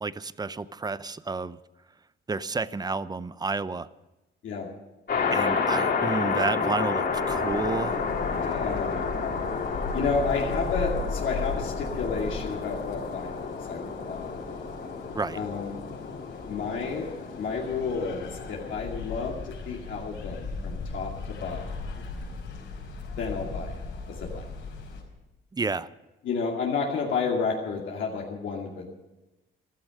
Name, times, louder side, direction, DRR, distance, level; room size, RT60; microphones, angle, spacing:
voice 1, 0.0-1.6 2.3-3.9 5.3-8.0 15.1-15.4 25.5-25.9, right 4 dB, 20° right, 17 dB, 0.6 m, -30 dB
sound 1, 5.1-19.0, left 5 dB, 55° left, 3.6 m, -31 dB
sound 2, 7.1-25.0, left 4 dB, 85° left, 5.3 m, -38 dB
voice 2, 8.3-9.0 9.9-14.4 15.3-15.8 16.5-17.1 17.4-22.0 23.2-24.5 26.2-28.9, left 5 dB, 70° left, -2 dB, 2.5 m, -31 dB
14.5 x 13.0 x 6.4 m, 1.0 s
cardioid pair, 90°, 20 cm